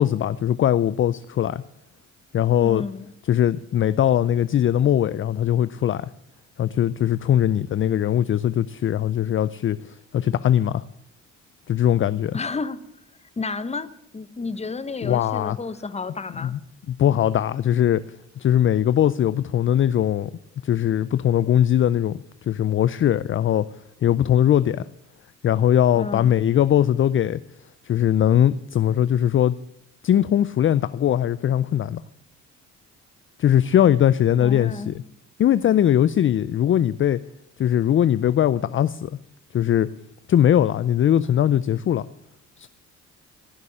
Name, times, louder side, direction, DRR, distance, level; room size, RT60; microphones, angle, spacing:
voice 1, 0.0-1.6 2.3-2.8 3.3-6.1 6.6-10.8 11.7-12.4 15.0-15.6 16.4-16.6 16.9-18.0 18.4-20.3 20.6-23.7 24.0-24.8 25.4-27.4 27.8-29.6 30.0-32.0 33.4-35.0 35.4-37.2 37.6-39.2 39.5-39.9 40.3-42.1 42.6-42.7, left 10 dB, 45° left, 16 dB, 0.5 m, -20 dB
voice 2, 2.6-3.1 12.3-12.9 13.4-16.5 25.9-26.3 34.4-35.0, left 4 dB, 20° left, 14 dB, 1.0 m, -31 dB
16.0 x 6.7 x 8.6 m, 0.78 s
cardioid pair, 90°, 30 cm